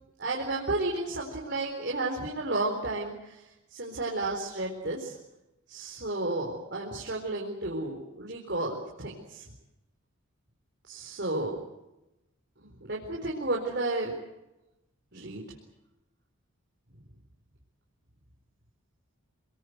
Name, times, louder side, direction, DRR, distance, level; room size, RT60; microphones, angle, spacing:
voice 1, 0.2-3.4 3.7-5.1 5.7-9.4 10.9-11.6 12.8-14.1 15.1-15.4, right 2 dB, 50° right, -1 dB, 4.2 m, -32 dB
27.5 x 20.5 x 8.1 m, 0.95 s
head